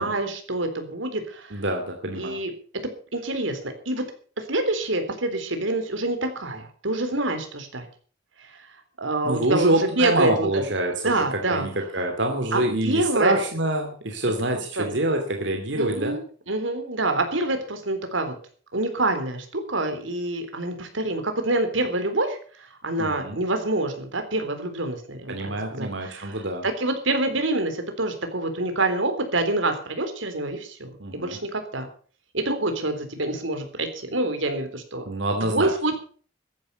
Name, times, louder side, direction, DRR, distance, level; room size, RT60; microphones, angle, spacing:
voice 1, 0.0-1.6 2.1-2.8 3.1-4.0 4.4-7.9 8.4-8.6 9.0-10.6 11.0-11.7 12.5-13.4 14.5-15.0 15.8-18.3 18.7-31.9 32.3-35.0 35.4-36.0, right 2 dB, 85° right, 7 dB, 3.8 m, -27 dB
voice 2, 1.5-2.4 9.2-16.2 23.0-23.4 25.3-26.7 31.0-31.4 35.1-35.7, right 1 dB, 65° right, 3 dB, 2.6 m, -26 dB
14.5 x 11.0 x 7.0 m, 0.43 s
head